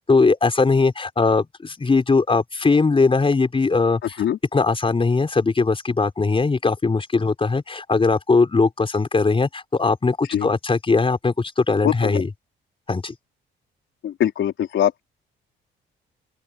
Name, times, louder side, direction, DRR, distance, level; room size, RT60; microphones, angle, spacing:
voice 1, 0.1-4.2 4.5-12.3 12.9-13.1, left 4 dB, 25° left, 4.5 m, -20 dB
voice 2, 11.8-12.2 14.0-15.0, left 10 dB, 70° left, 4.8 m, -22 dB
open air
cardioid pair, 90°, 20 cm